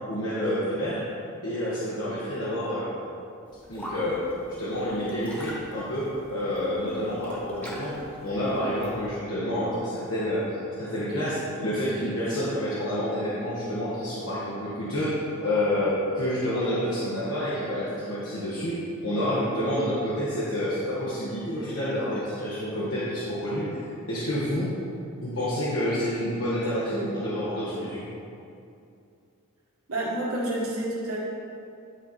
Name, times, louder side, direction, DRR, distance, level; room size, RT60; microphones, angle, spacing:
voice 1, 0.1-1.0 1.4-2.9 3.7-4.2 4.6-7.9 8.2-24.7 25.2-28.1, equal, 70° left, -9 dB, 1.4 m, -28 dB
sound 1, 3.5-9.1, equal, 10° left, 1.4 m, -44 dB
voice 2, 29.9-31.2, right 1 dB, 90° right, -4 dB, 1.7 m, -29 dB
10.5 x 4.1 x 4.4 m, 2.6 s
head